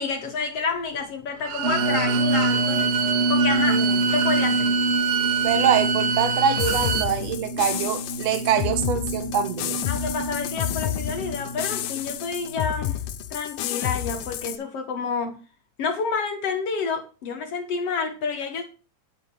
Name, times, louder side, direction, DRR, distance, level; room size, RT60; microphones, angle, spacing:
voice 1, 0.0-2.9 3.3-4.7 9.9-13.0 13.3-15.4 15.8-18.6, left 5 dB, 55° left, 2.0 m, -29 dB
Bowed string instrument, 1.4-7.1, right 8 dB, 80° right, 2.5 m, -26 dB
sound 1, 1.6-12.6, right 1 dB, 25° right, 2.0 m, -27 dB
voice 2, 5.4-9.8, right 8 dB, 65° right, 1.8 m, -24 dB
sound 2, 6.6-14.6, left 12 dB, 75° left, 2.3 m, -30 dB
9.9 x 5.7 x 6.1 m
omnidirectional pair, 4.1 m